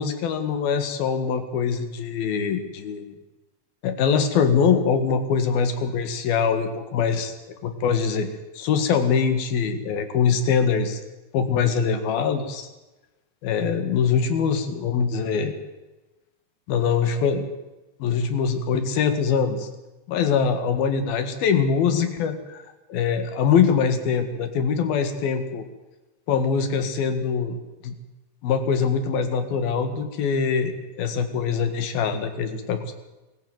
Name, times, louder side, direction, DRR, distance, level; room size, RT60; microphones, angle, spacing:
voice 1, 0.0-3.2 3.8-7.3 7.6-8.3 8.5-11.0 11.3-12.7 13.4-15.5 16.7-17.5 18.0-19.7 20.1-22.6 22.9-25.6 26.3-27.9 28.4-33.0, left 6 dB, 70° left, 8 dB, 3.6 m, -23 dB
22.5 x 14.5 x 9.3 m, 1.1 s
omnidirectional pair, 4.6 m